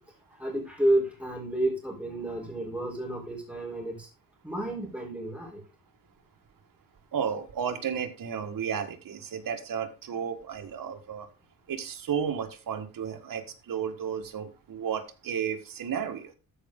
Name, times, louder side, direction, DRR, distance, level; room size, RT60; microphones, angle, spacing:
voice 1, 0.3-4.1 4.4-5.6, right 1 dB, 5° right, -1 dB, 3.8 m, -30 dB
voice 2, 7.1-11.3 11.7-16.3, right 7 dB, 60° right, 5 dB, 1.6 m, -33 dB
13.5 x 5.2 x 3.7 m, 0.30 s
wide cardioid pair, 135°, 36 cm